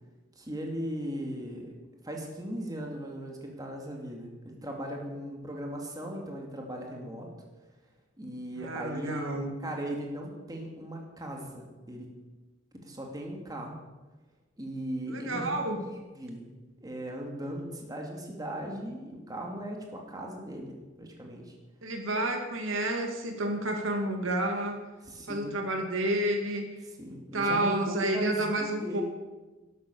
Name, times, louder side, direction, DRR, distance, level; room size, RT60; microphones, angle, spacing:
voice 1, 0.4-1.7 2.0-7.3 8.2-9.3 9.6-12.1 12.8-13.8 14.6-16.5 16.8-21.5 25.0-25.6 27.0-29.0, right 1 dB, 20° right, 0 dB, 2.5 m, -38 dB
voice 2, 8.6-9.5 15.1-15.8 21.8-24.8 25.3-26.6 27.3-29.0, right 1 dB, 80° right, 4 dB, 2.2 m, -30 dB
12.0 x 12.0 x 6.9 m, 1.2 s
head